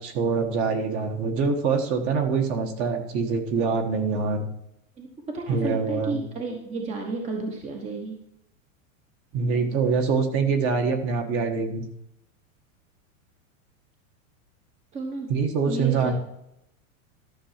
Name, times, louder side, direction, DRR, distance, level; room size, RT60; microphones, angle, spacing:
voice 1, 0.0-4.5 5.5-6.2 9.3-11.9 15.3-16.1, right 5 dB, 35° right, 5 dB, 1.5 m, -24 dB
voice 2, 5.0-8.2 14.9-15.3 15.6-16.1, right 3 dB, 15° right, 2 dB, 1.1 m, -32 dB
12.5 x 6.2 x 5.7 m, 0.80 s
supercardioid pair, 160°, 41 cm